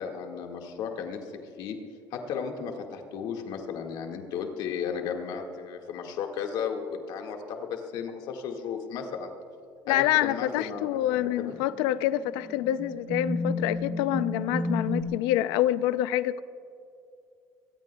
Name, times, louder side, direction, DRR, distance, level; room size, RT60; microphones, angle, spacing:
voice 1, 0.0-1.3 1.6-1.8 2.1-6.8 7.1-9.3 9.9-11.6, left 7 dB, 70° left, 3 dB, 1.8 m, -34 dB
voice 2, 9.9-16.4, left 13 dB, 85° left, 15 dB, 0.5 m, -26 dB
sound 1, 11.5-11.6 12.4-15.0, left 1 dB, 20° right, 1.4 m, -31 dB
24.0 x 18.0 x 2.3 m, 2.4 s
cardioid pair, 120°, 8 cm